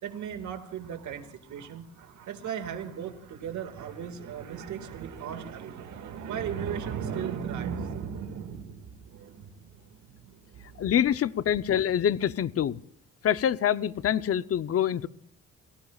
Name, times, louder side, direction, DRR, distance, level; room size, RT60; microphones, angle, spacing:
voice 1, 0.0-10.9, right 8 dB, 75° right, 2.1 m, -37 dB
voice 2, 10.8-12.8 13.2-15.1, left 9 dB, 50° left, 0.8 m, -25 dB
29.0 x 17.5 x 2.4 m
cardioid pair, 90°, 30 cm